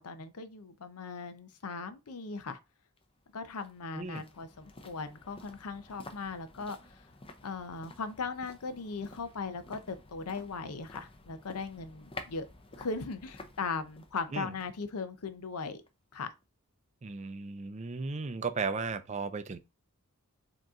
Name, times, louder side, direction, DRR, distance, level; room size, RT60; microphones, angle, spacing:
voice 1, 0.0-2.6 3.3-7.0 7.4-12.5 12.8-15.8 16.1-16.3, left 4 dB, 90° left, 0.7 m, -38 dB
sound 1, 3.0-16.1 16.4-16.5, left 2 dB, 25° left, 0.6 m, -52 dB
voice 2, 17.0-19.6, right 4 dB, 30° right, 0.4 m, -35 dB
4.9 x 2.9 x 3.6 m
head